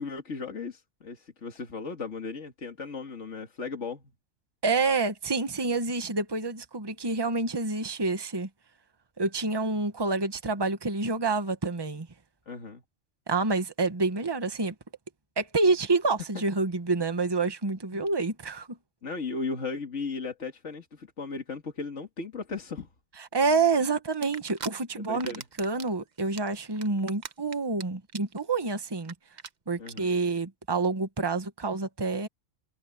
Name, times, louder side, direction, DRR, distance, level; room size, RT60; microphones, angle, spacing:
voice 1, 0.0-4.0 12.5-12.8 16.3-16.4 17.9-18.1 19.0-22.9 25.0-25.4 29.8-30.1, left 4 dB, 75° left, 2.4 m, -36 dB
voice 2, 4.6-8.5 9.2-12.1 13.3-14.7 15.4-18.8 23.2-29.1 29.7-32.3, right 3 dB, 20° right, 1.3 m, -28 dB
sound 1, 24.2-24.7 25.0-25.9 26.2-27.8 28.1-28.4 28.7-28.8 29.0-29.1 29.4-29.5 29.9-30.0, right 6 dB, 40° right, 0.9 m, -39 dB
omnidirectional pair, 1.3 m